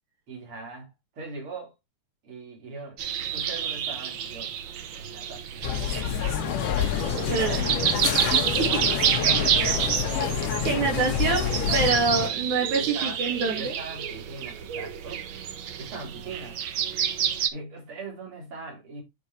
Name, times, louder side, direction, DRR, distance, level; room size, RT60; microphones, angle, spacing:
voice 1, 0.3-1.7 2.2-3.0 3.3-4.5 5.0-5.9 7.1-7.7 8.6-8.8 9.2-10.4 10.9-11.5 12.4-12.5 12.7-13.2 13.6-15.2 15.8-16.6 17.5-19.0, right 3 dB, 45° right, 4.2 m, -40 dB
sound 1, 3.0-17.5, right 9 dB, 90° right, 1.0 m, -29 dB
sound 2, 5.6-11.9, left 8 dB, 60° left, 2.1 m, -28 dB
sound 3, 6.5-12.3, left 15 dB, 80° left, 2.0 m, -33 dB
voice 2, 7.3-7.7 8.2-8.8 10.6-13.7, right 4 dB, 70° right, 3.5 m, -26 dB
9.1 x 4.8 x 4.6 m
omnidirectional pair, 3.6 m